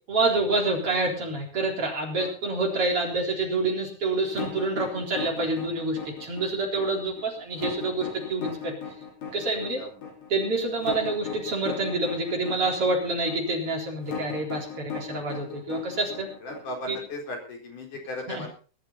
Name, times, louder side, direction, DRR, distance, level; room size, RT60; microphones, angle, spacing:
voice 1, 0.1-8.8 9.3-9.8 10.3-16.3 16.9-17.0 18.3-18.4, right 2 dB, 45° right, 0 dB, 4.9 m, -27 dB
sound 1, 4.3-17.2, left 6 dB, 65° left, 5.9 m, -37 dB
voice 2, 9.8-10.1 16.4-18.5, left 1 dB, 80° left, 2 dB, 6.0 m, -37 dB
21.0 x 12.0 x 4.2 m, 0.36 s
omnidirectional pair, 3.6 m